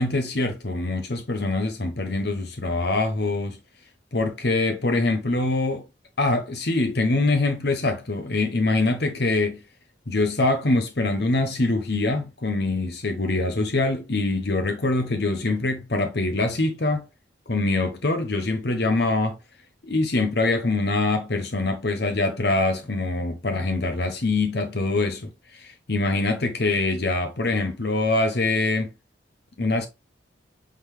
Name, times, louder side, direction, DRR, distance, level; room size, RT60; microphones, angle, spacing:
voice 1, 0.0-3.6 4.1-5.8 6.2-9.6 10.1-17.1 17.5-19.4 19.8-28.9 29.6-29.9, left 2 dB, 60° left, 1.0 m, -24 dB
8.7 x 3.9 x 3.3 m
head